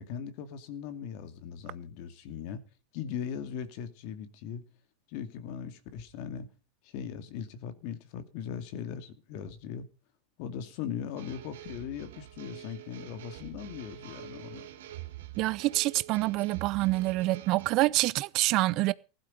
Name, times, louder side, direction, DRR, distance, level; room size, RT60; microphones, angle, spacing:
voice 1, 0.0-2.6 2.9-4.6 5.1-6.5 6.8-9.9 10.4-14.7, left 8 dB, 60° left, 2.3 m, -39 dB
sound 1, 11.2-17.7, right 13 dB, 85° right, 3.1 m, -45 dB
voice 2, 15.4-18.9, right 19 dB, 50° right, 0.7 m, -26 dB
15.5 x 12.0 x 5.2 m
supercardioid pair, 125°, 0 cm